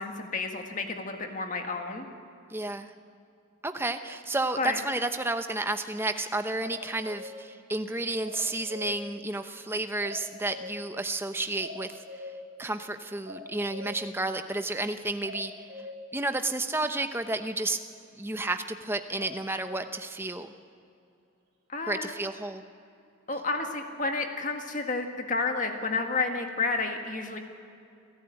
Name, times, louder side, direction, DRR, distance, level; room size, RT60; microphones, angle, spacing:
voice 1, 0.0-2.1 4.6-4.8 21.7-22.1 23.3-27.4, left 3 dB, 35° left, 4 dB, 1.9 m, -31 dB
voice 2, 2.5-2.9 3.6-11.9 12.6-15.5 16.1-17.8 18.2-20.5 21.9-22.6, right 2 dB, 10° right, 8 dB, 0.8 m, -31 dB
sound 1, 6.6-7.3 8.2-8.9 10.0-10.8 11.6-12.3 13.3-14.0 15.2-15.9 19.2-19.8, left 2 dB, 50° right, 3.6 m, -42 dB
28.5 x 12.0 x 8.9 m, 2.5 s
head